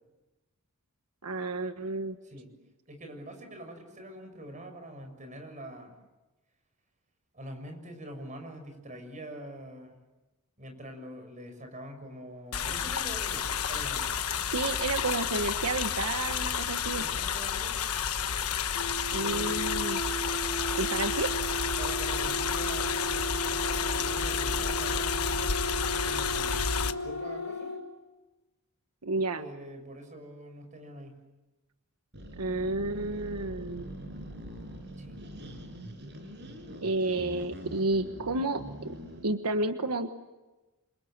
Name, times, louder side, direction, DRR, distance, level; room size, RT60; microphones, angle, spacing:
voice 1, 1.2-2.2 14.5-17.0 19.1-20.0 20.8-21.3 29.0-29.5 32.4-33.9 36.8-38.9 39.2-40.1, right 2 dB, 90° right, 8 dB, 1.4 m, -31 dB
voice 2, 2.9-5.9 7.3-10.0 10.6-14.1 16.5-17.8 19.1-19.5 21.8-27.7 29.3-31.2 35.0-35.3, right 1 dB, 35° right, 6 dB, 6.6 m, -45 dB
sound 1, 12.5-26.9, left 7 dB, 75° left, 1.3 m, -31 dB
sound 2, 18.7-27.8, right 1 dB, 50° left, 5.6 m, -35 dB
sound 3, 32.1-39.3, equal, 50° right, 5.6 m, -43 dB
28.5 x 27.0 x 7.6 m, 1.1 s
head